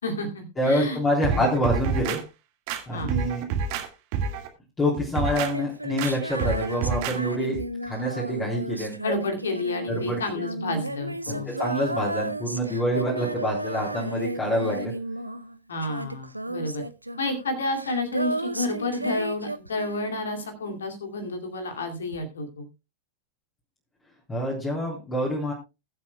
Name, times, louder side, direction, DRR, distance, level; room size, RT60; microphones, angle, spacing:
voice 1, 0.0-1.0 1.3-1.4 2.9-3.1 9.0-11.6 15.7-16.8 17.2-22.7, left 2 dB, 65° left, 5 dB, 2.5 m, -30 dB
voice 2, 0.6-2.2 2.9-3.4 4.8-7.6 7.9-9.0 9.9-10.2 11.3-14.9 24.3-25.5, equal, 20° left, -3 dB, 3.5 m, -26 dB
sound 1, 1.2-2.2 2.7-3.9 4.1-4.5 4.9-5.5 6.0-6.1 6.4-7.2 7.5-7.6, right 5 dB, 45° right, 1.7 m, -28 dB
Female singing, 5.2-20.6 22.1-22.2, right 1 dB, 85° right, 0.6 m, -33 dB
21.0 x 7.7 x 2.2 m, 0.27 s
figure-of-eight pair, 90°, 0 cm